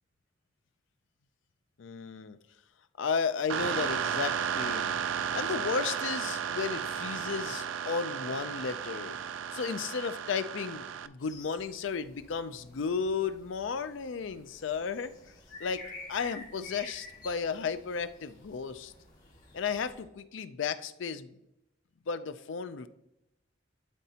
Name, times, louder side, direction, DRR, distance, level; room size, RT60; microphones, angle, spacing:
voice 1, 1.8-2.4 3.0-4.9 5.3-9.2 9.5-15.1 15.6-15.8 16.1-18.9 19.5-21.3 22.1-22.9, left 5 dB, 75° left, 12 dB, 0.5 m, -34 dB
sound 1, 3.5-11.1, right 7 dB, 75° right, 0.4 m, -34 dB
sound 2, 11.2-20.0, left 3 dB, 45° left, 2.2 m, -50 dB
11.5 x 4.2 x 2.8 m, 0.87 s
head